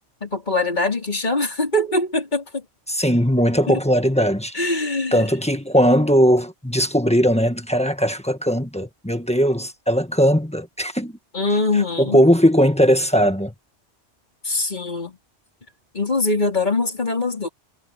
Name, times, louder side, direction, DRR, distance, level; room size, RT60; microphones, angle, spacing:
voice 1, 0.2-2.6 3.7-3.8 4.5-5.2 11.3-12.2 14.4-15.2 15.9-17.5, left 2 dB, 40° left, 4.5 m, -23 dB
voice 2, 2.9-4.6 5.1-11.1 12.0-13.5, equal, 5° left, 1.4 m, -19 dB
omnidirectional pair, 1.1 m